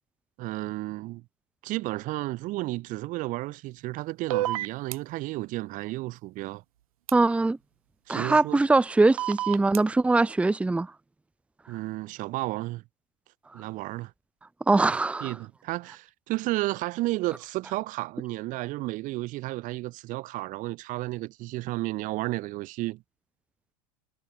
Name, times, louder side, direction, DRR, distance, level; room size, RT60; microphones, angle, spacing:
voice 1, 0.4-1.2 1.6-6.6 8.1-8.6 11.7-12.8 13.5-14.1 15.2-23.0, right 19 dB, 45° right, 2.6 m, -32 dB
sound 1, 4.3-5.0 7.1-7.2 9.2-9.8, right 14 dB, 80° right, 2.9 m, -28 dB
voice 2, 7.1-7.6 8.1-10.9 14.7-15.3, right 3 dB, 5° right, 1.0 m, -22 dB
supercardioid pair, 120°, 18 cm